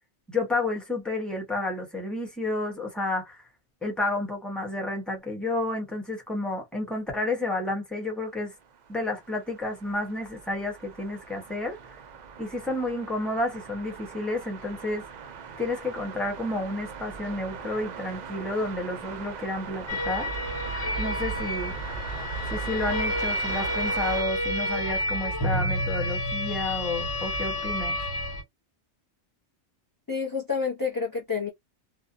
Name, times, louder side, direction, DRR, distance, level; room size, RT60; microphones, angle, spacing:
voice 1, 0.3-3.4 3.8-8.5 8.9-11.8 12.4-15.0 15.6-20.3 21.0-21.7 22.5-28.0, left 2 dB, ahead, 0.8 m, -31 dB
sound 1, 8.5-24.2, right 6 dB, 55° right, 0.5 m, -41 dB
sound 2, 19.9-28.4, equal, 75° left, 1.3 m, -29 dB
voice 2, 30.1-31.5, left 5 dB, 25° left, 0.5 m, -29 dB
2.5 x 2.1 x 2.5 m
omnidirectional pair, 1.2 m